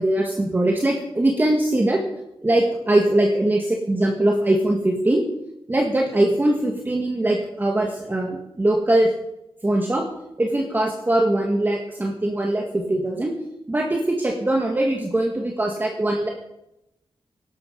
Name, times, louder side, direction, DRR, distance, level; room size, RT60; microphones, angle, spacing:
voice 1, 0.0-2.0 2.4-5.2 5.7-9.1 9.6-10.1 10.4-13.3 13.7-16.3, right 1 dB, 20° right, 1 dB, 1.8 m, -21 dB
18.0 x 12.0 x 5.2 m, 0.86 s
wide cardioid pair, 145°, 10 cm